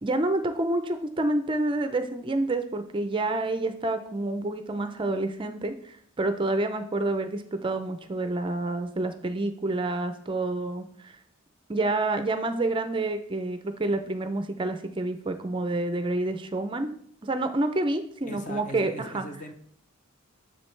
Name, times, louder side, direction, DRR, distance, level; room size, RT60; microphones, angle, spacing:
voice 1, 0.0-11.2 11.7-16.9 17.2-19.3, right 2 dB, 25° right, 8 dB, 0.4 m, -28 dB
voice 2, 18.2-19.5, equal, 35° left, 7 dB, 0.7 m, -39 dB
7.4 x 6.8 x 3.2 m, 0.64 s
head